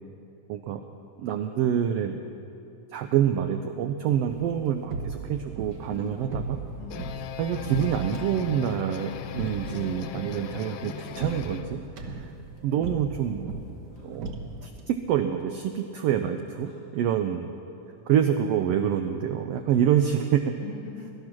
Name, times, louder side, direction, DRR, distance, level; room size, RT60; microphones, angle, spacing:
voice 1, 0.5-0.8 1.2-2.2 2.9-6.6 7.4-12.1 12.6-13.5 14.0-14.3 14.6-17.5 18.1-20.5, right 9 dB, 90° right, 7 dB, 1.3 m, -26 dB
sound 1, 4.3-14.9, right 3 dB, 70° right, 1.0 m, -38 dB
sound 2, 5.4-11.4, left 1 dB, 50° right, 3.3 m, -53 dB
voice 2, 5.9-6.3 6.8-7.2 12.1-12.3 13.9-14.9 16.6-17.3 17.7-18.1 20.6-21.1, left 7 dB, 60° left, 0 dB, 2.5 m, -46 dB
sound 3, 6.6-11.8, left 9 dB, 90° left, 1.3 m, -38 dB
18.0 x 12.0 x 6.1 m, 2.7 s
omnidirectional pair, 3.5 m